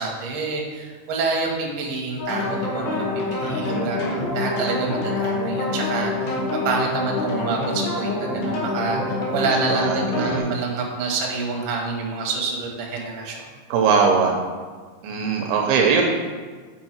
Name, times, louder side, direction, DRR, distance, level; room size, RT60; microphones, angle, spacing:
voice 1, 0.0-13.5, right 4 dB, 65° right, -1 dB, 2.4 m, -27 dB
sound 1, 2.2-10.4, left 2 dB, 70° left, 3.0 m, -26 dB
voice 2, 3.6-4.1 9.7-10.4 13.7-14.3 15.0-16.0, right 5 dB, 85° right, 1 dB, 2.6 m, -21 dB
6.4 x 5.6 x 4.4 m, 1.5 s
omnidirectional pair, 4.5 m